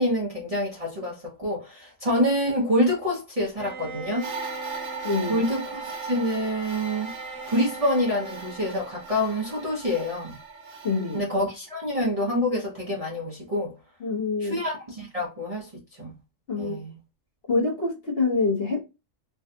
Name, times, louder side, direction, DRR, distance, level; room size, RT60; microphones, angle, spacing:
voice 1, 0.0-4.3 5.3-7.1 7.5-10.4 11.1-13.8 14.4-16.2 16.6-17.0, left 1 dB, 30° right, 0.8 m, -27 dB
Bowed string instrument, 3.6-9.6, right 3 dB, 10° left, 1.2 m, -40 dB
sound 1, 4.2-11.2, right 4 dB, 70° right, 1.2 m, -39 dB
voice 2, 5.0-5.4 10.8-11.3 14.0-14.6 16.5-16.8 17.5-18.8, left 3 dB, 50° left, 1.2 m, -26 dB
3.4 x 2.3 x 2.7 m
omnidirectional pair, 1.3 m